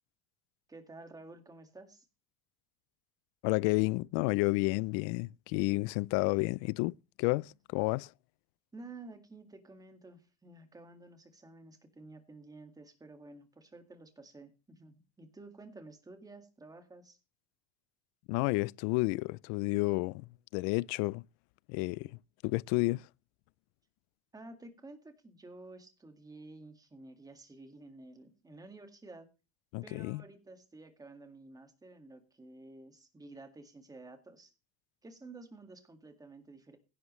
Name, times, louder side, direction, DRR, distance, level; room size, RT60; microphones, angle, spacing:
voice 1, 0.7-2.1 8.7-17.2 24.3-29.3 29.8-34.5 35.0-36.8, right 2 dB, 10° right, 1.9 m, -52 dB
voice 2, 3.4-8.1 18.3-20.2 20.5-21.2 21.7-22.1 22.4-23.1 29.7-30.2, left 24 dB, 85° left, 0.5 m, -31 dB
16.0 x 11.0 x 3.2 m
cardioid pair, 160°, 34 cm